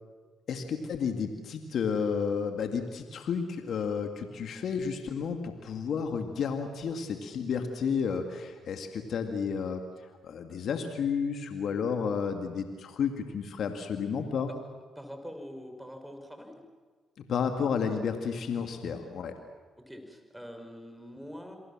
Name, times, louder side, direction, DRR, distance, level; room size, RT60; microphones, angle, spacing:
voice 1, 0.5-9.8 10.2-14.5 17.2-19.3, left 6 dB, 70° left, 6 dB, 2.2 m, -31 dB
voice 2, 15.0-16.6 19.9-21.6, equal, 5° right, 6 dB, 6.0 m, -44 dB
28.5 x 22.5 x 7.5 m, 1.5 s
supercardioid pair, 65°, 0 cm